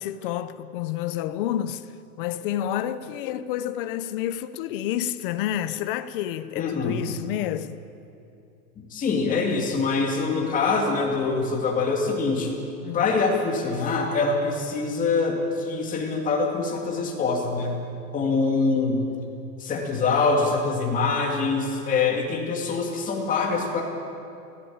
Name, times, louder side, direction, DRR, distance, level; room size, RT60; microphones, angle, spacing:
voice 1, 0.0-7.8 12.8-13.1, left 11 dB, 35° left, 0.7 m, -29 dB
voice 2, 6.6-7.0 8.8-12.6 12.9-17.7 18.1-19.0 19.6-23.8, left 4 dB, 15° left, 2.4 m, -24 dB
24.0 x 17.0 x 8.8 m
supercardioid pair, 175°, 48 cm